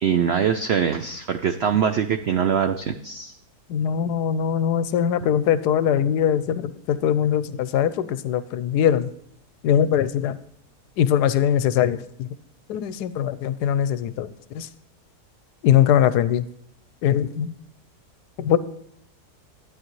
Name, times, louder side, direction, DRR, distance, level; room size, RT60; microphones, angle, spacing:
voice 1, 0.0-3.3, right 7 dB, 80° right, 8 dB, 0.5 m, -23 dB
voice 2, 3.7-9.1 9.6-10.4 11.0-12.3 12.7-14.3 14.5-14.7 15.6-16.5 17.0-17.5 18.4-18.6, left 9 dB, 80° left, 15 dB, 1.1 m, -21 dB
11.5 x 9.4 x 3.1 m, 0.74 s
omnidirectional pair, 1.7 m